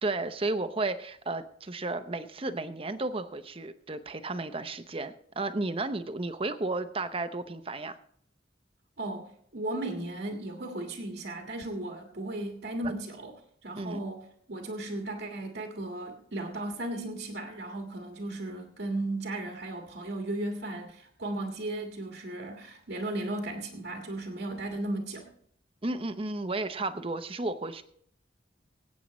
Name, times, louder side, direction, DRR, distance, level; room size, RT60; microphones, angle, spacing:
voice 1, 0.0-8.0 13.7-14.0 25.8-27.8, right 2 dB, 30° right, 10 dB, 0.8 m, -33 dB
voice 2, 9.0-13.4 13.6-25.3, right 1 dB, 80° right, 1 dB, 1.7 m, -36 dB
25.0 x 8.5 x 3.1 m, 0.65 s
head